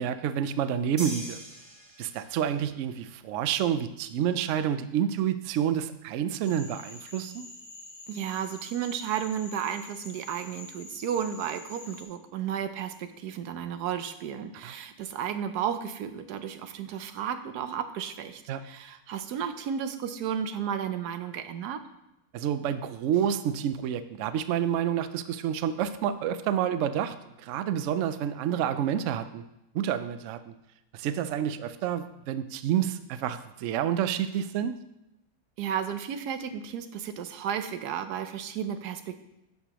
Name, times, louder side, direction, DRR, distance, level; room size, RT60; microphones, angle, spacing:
voice 1, 0.0-1.4 2.0-7.5 14.6-14.7 18.5-18.6 22.3-29.4 29.7-30.5 30.9-34.7, right 9 dB, 70° right, 12 dB, 0.7 m, -29 dB
sound 1, 1.0-2.5, right 1 dB, 20° right, 0.8 m, -40 dB
Cricket / Frog, 6.4-12.0, left 2 dB, 75° left, 1.9 m, -46 dB
voice 2, 8.1-21.8 35.6-39.2, right 8 dB, 90° right, 9 dB, 1.2 m, -33 dB
11.0 x 6.4 x 3.0 m, 0.90 s
omnidirectional pair, 1.6 m